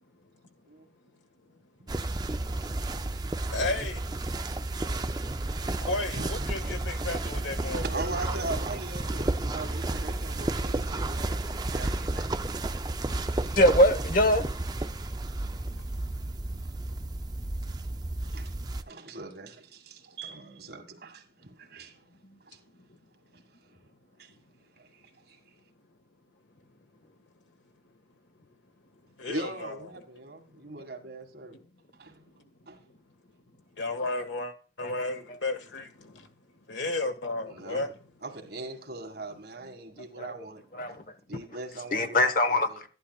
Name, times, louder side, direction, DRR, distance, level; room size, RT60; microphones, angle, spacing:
sound 1, 1.9-18.8, right 2 dB, 20° right, 0.5 m, -32 dB
voice 1, 3.5-4.1 5.8-7.8 8.2-8.5 15.7-16.1 22.2-22.4 29.2-30.0 32.3-32.4 32.8-32.9 33.8-36.3 36.7-37.9, left 2 dB, 90° left, 1.6 m, -34 dB
voice 2, 7.7-12.3 17.7-17.8 18.1-22.0 22.5-22.6 24.2-24.3 24.8-24.9 25.3-25.4 29.3-31.6 31.9-32.2 32.7-32.8 37.5-37.8 38.2-40.6 40.9-41.0 41.3-42.8, right 2 dB, 60° right, 1.9 m, -40 dB
voice 3, 13.6-14.4 34.8-35.1 40.2-40.3 40.7-41.0 41.9-42.9, left 1 dB, 50° left, 1.1 m, -23 dB
12.0 x 11.5 x 2.3 m
head